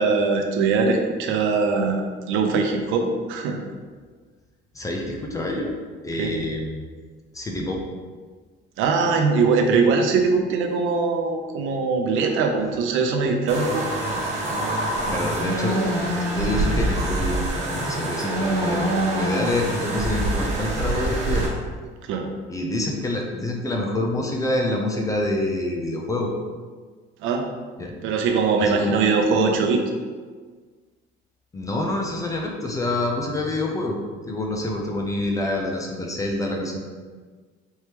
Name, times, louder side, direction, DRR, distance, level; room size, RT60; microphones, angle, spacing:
voice 1, 0.0-3.6 6.2-6.3 8.8-13.9 22.0-22.3 27.2-27.5 28.0-29.8, right 4 dB, 70° right, 3 dB, 0.6 m, -21 dB
voice 2, 4.7-5.7 6.0-6.8 7.3-7.8 15.1-21.5 22.5-26.3 27.8-27.9 28.6-29.2 31.5-34.0 34.3-36.8, left 1 dB, 15° left, 0 dB, 0.4 m, -27 dB
sound 1, 13.5-21.5, right 1 dB, 35° right, 0.9 m, -25 dB
4.5 x 3.0 x 3.3 m, 1.5 s
cardioid pair, 155°, 21 cm